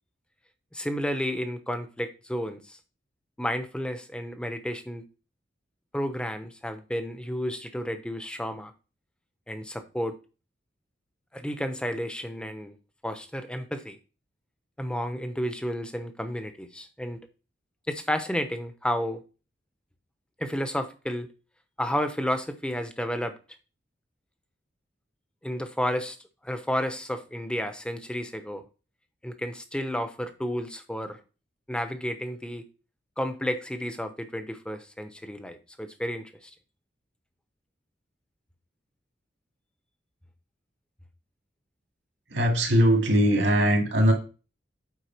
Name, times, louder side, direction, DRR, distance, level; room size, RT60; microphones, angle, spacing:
voice 1, 0.7-2.8 3.4-5.0 5.9-8.7 9.5-10.2 11.3-12.8 13.0-14.0 14.8-17.2 17.9-19.2 20.4-21.3 21.8-23.4 25.4-26.2 26.4-28.6 29.2-31.2 31.7-32.6 33.2-36.5, equal, 5° left, 8 dB, 0.8 m, -31 dB
voice 2, 42.3-44.1, equal, 75° right, 2 dB, 2.1 m, -21 dB
8.3 x 4.8 x 4.5 m, 0.33 s
head